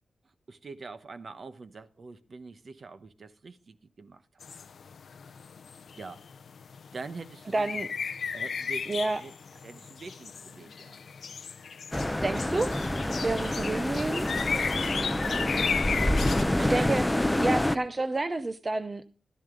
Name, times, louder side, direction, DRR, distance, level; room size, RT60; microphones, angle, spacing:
voice 1, 0.5-4.2 6.0-6.2 6.9-7.7 8.3-8.9 9.2-9.3 9.6-11.0 16.3-17.0, right 4 dB, 45° right, 0.9 m, -44 dB
sound 1, 4.4-16.4, left 6 dB, 65° left, 0.6 m, -35 dB
voice 2, 7.5-7.9 8.9-9.2 12.2-12.7 13.1-14.3 16.7-17.0 17.4-19.0, right 2 dB, 25° right, 0.7 m, -29 dB
sound 2, 11.9-17.8, left 1 dB, 10° left, 0.6 m, -27 dB
14.0 x 12.5 x 3.8 m
wide cardioid pair, 160°, 0 cm